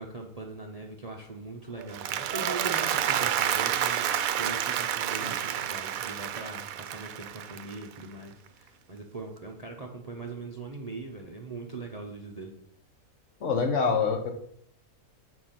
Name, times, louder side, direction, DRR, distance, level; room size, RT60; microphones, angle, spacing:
voice 1, 0.0-12.5, right 3 dB, 35° right, 2 dB, 0.7 m, -41 dB
Applause, 1.8-8.1, right 10 dB, 70° right, 1.0 m, -29 dB
voice 2, 13.4-14.3, left 5 dB, 55° left, 5 dB, 1.2 m, -25 dB
6.8 x 4.8 x 5.8 m, 0.67 s
omnidirectional pair, 1.6 m